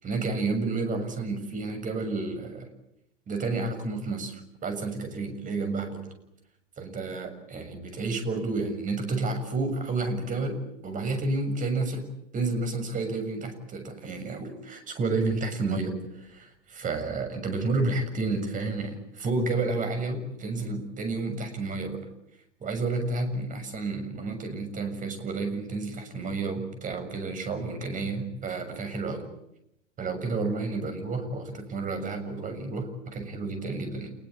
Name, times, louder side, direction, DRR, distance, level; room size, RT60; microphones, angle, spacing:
voice 1, 0.0-2.7 3.3-6.1 6.8-12.0 12.3-22.0 22.6-29.3 30.0-34.1, right 3 dB, 20° right, 7 dB, 6.9 m, -30 dB
28.5 x 20.5 x 8.7 m, 0.80 s
figure-of-eight pair, 105°, 36 cm